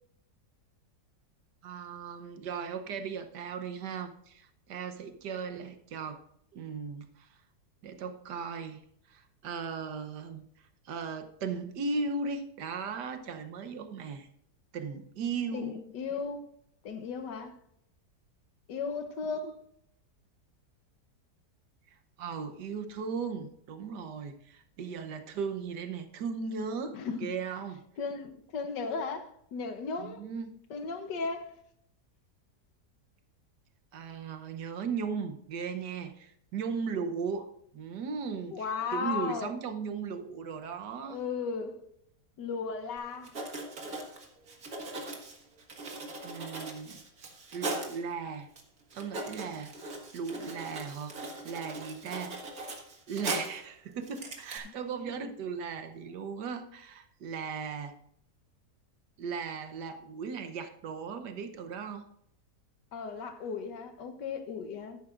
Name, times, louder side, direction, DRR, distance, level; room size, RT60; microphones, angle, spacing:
voice 1, 1.6-6.2 6.5-7.3 7.8-8.8 9.1-10.4 10.8-14.3 14.7-15.8 22.2-27.8 30.0-30.5 33.9-41.2 46.2-47.0 47.5-48.5 48.9-49.7 50.1-51.1 51.4-52.4 53.1-58.0 59.2-62.1, right 5 dB, 80° right, 1.6 m, -37 dB
voice 2, 15.5-16.5 16.8-17.6 18.7-19.6 26.9-27.3 28.0-30.2 30.7-31.5 38.5-39.5 41.0-41.8 42.4-43.3 54.6-54.7 55.0-55.1 62.9-65.0, left 5 dB, 85° left, 1.7 m, -36 dB
Writing, 43.0-43.1 43.2-48.0 48.6-48.7 48.9-53.7 54.0-54.6, right 2 dB, 55° right, 2.1 m, -39 dB
13.0 x 11.5 x 2.5 m
omnidirectional pair, 1.8 m